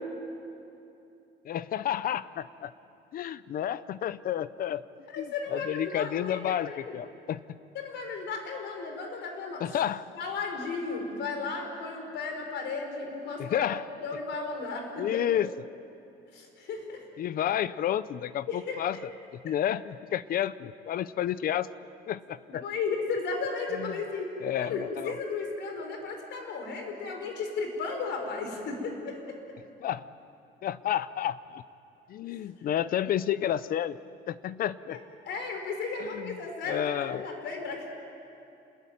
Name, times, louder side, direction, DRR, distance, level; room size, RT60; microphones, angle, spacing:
voice 1, 1.5-2.7 3.1-4.8 5.2-5.3 5.5-7.4 9.6-10.1 13.4-13.8 15.0-15.5 17.2-21.7 22.1-22.6 23.8-23.9 24.4-25.1 29.8-30.1 30.6-31.6 32.1-34.0 34.3-35.0 36.0-36.4 36.7-37.3, left 10 dB, 45° left, 16 dB, 0.6 m, -30 dB
voice 2, 5.1-6.9 7.7-9.8 10.1-13.7 14.0-15.2 16.3-17.1 18.5-19.0 19.4-19.5 22.6-24.3 24.6-29.4 34.9-35.0 35.2-37.9, left 4 dB, 65° left, 4 dB, 4.7 m, -34 dB
27.5 x 21.0 x 9.3 m, 2.7 s
cardioid pair, 175°, 20 cm